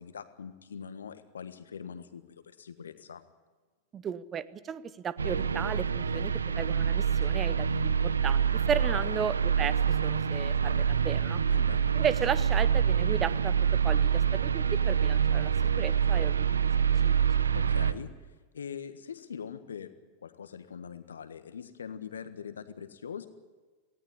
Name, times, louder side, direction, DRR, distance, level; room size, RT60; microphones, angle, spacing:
voice 1, 0.0-3.2 8.9-9.2 11.5-11.8 17.5-18.1 18.5-19.9 20.2-23.3, left 7 dB, 70° left, 11 dB, 1.4 m, -42 dB
voice 2, 3.9-11.4 11.9-16.4 17.0-17.1 17.4-17.5, right 7 dB, 25° right, 17 dB, 0.8 m, -35 dB
sound 1, 5.2-17.9, right 7 dB, 75° right, 0.8 m, -26 dB
18.5 x 17.0 x 9.9 m, 1.3 s
figure-of-eight pair, 90°, 0 cm